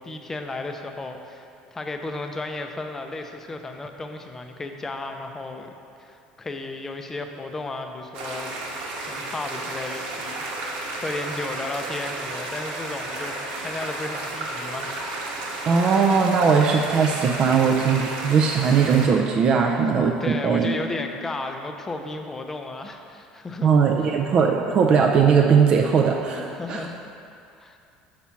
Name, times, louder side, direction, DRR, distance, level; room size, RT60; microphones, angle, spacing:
voice 1, 0.0-8.5 9.0-15.0 20.2-24.2 26.3-27.0 27.6-27.8, left 2 dB, 15° left, 5 dB, 0.5 m, -34 dB
sound 1, 8.1-19.1, right 2 dB, 70° right, 1.1 m, -32 dB
voice 2, 15.6-20.7 23.6-26.9, right 6 dB, 40° right, 1 dB, 0.4 m, -19 dB
6.0 x 4.3 x 5.7 m, 2.5 s
cardioid pair, 140°, 2 cm